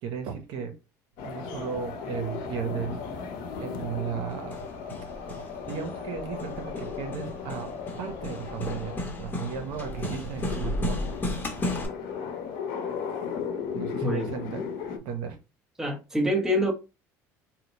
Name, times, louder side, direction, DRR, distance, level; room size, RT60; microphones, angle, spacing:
voice 1, 0.0-0.8 1.2-3.0 3.6-4.6 5.7-7.7 8.0-11.1 13.7-14.7 15.0-15.4, right 7 dB, 75° right, 0.8 m, -35 dB
sound 1, 1.2-15.0, left 6 dB, 75° left, 0.7 m, -36 dB
Hammer, 4.3-11.9, left 1 dB, 25° left, 1.0 m, -34 dB
voice 2, 15.8-16.7, equal, 5° right, 0.9 m, -25 dB
2.9 x 2.1 x 4.0 m
supercardioid pair, 105°, 8 cm